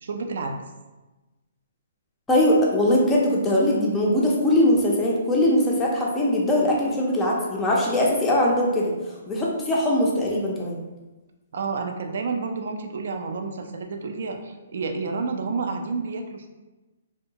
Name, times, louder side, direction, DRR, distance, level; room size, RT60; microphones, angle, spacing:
voice 1, 0.0-0.7 11.5-16.5, right 4 dB, 60° right, 4 dB, 0.4 m, -30 dB
voice 2, 2.3-10.8, left 1 dB, 10° left, -4 dB, 0.4 m, -21 dB
2.7 x 2.2 x 2.7 m, 1.1 s
hypercardioid pair, 165°, 0 cm